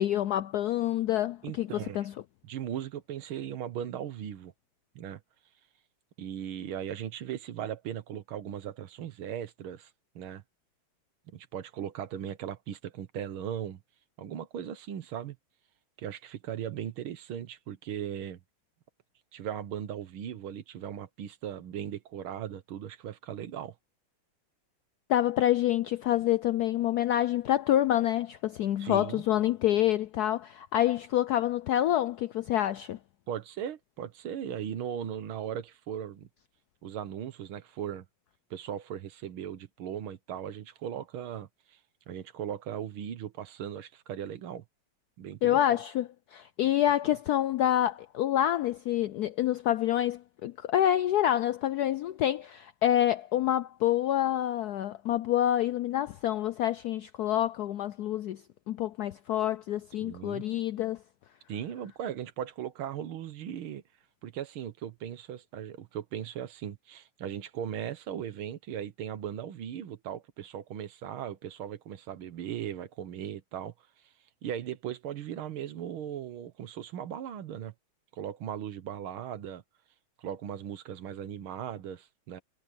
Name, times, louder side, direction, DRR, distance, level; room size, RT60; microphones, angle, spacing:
voice 1, 0.0-1.7 1.9-2.1 25.1-33.0 45.4-61.0, left 12 dB, 80° left, 0.8 m, -27 dB
voice 2, 1.4-2.1 2.4-4.5 5.0-5.2 6.2-9.9 10.2-10.4 11.3-13.8 14.2-15.4 16.0-18.4 19.3-23.8 28.8-29.2 33.3-36.3 36.8-38.1 38.5-41.8 42.1-44.6 45.2-45.8 60.0-60.4 61.5-63.8 64.2-73.7 74.4-77.7 78.1-79.6 80.2-82.4, right 9 dB, 90° right, 2.0 m, -38 dB
omnidirectional pair, 2.2 m